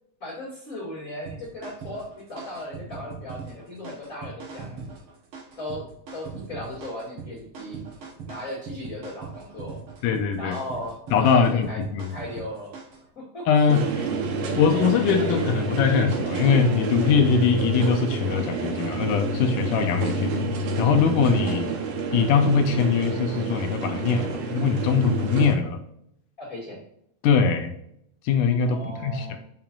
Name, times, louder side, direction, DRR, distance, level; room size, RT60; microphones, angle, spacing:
voice 1, 0.2-4.8 5.6-5.9 6.1-7.8 8.3-9.8 10.3-12.7 13.2-14.2 26.4-26.8 28.6-29.4, left 1 dB, 25° left, -7 dB, 2.3 m, -37 dB
sound 1, 1.3-13.1, right 5 dB, 55° right, 1.6 m, -41 dB
voice 2, 10.0-10.6 11.1-12.1 13.5-13.8 14.6-20.5 20.8-21.7 22.1-25.8 27.2-27.7 28.2-29.4, left 6 dB, 80° left, 6 dB, 2.1 m, -22 dB
sound 2, 13.7-25.5, right 3 dB, 80° right, 2.8 m, -28 dB
7.2 x 5.7 x 2.5 m, 0.72 s
omnidirectional pair, 3.9 m